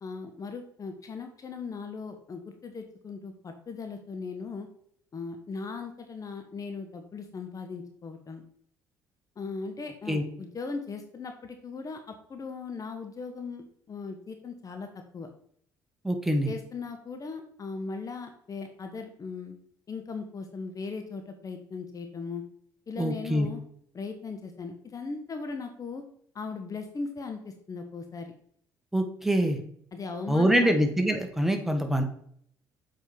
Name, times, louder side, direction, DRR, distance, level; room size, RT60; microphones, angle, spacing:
voice 1, 0.0-4.7 5.1-8.4 9.4-14.9 15.1-15.3 16.4-19.6 19.9-22.4 22.9-23.6 23.9-26.0 26.3-28.3 29.9-30.8, left 4 dB, 35° left, 6 dB, 1.3 m, -38 dB
voice 2, 16.0-16.5 23.0-23.5 28.9-29.6 30.3-32.0, equal, 5° right, 5 dB, 1.7 m, -24 dB
7.5 x 5.1 x 5.3 m, 0.63 s
hypercardioid pair, 55°, 10 cm